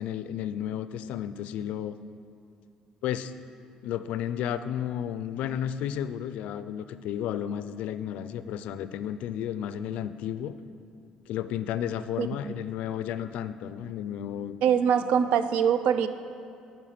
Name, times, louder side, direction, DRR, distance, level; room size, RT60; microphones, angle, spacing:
voice 1, 0.0-2.0 3.0-3.3 3.8-10.5 11.3-14.6, left 10 dB, 80° left, 12 dB, 0.3 m, -32 dB
voice 2, 12.2-12.5 14.6-16.1, right 8 dB, 85° right, 11 dB, 0.4 m, -23 dB
11.0 x 4.6 x 5.0 m, 2.4 s
cardioid pair, 110°, 2 cm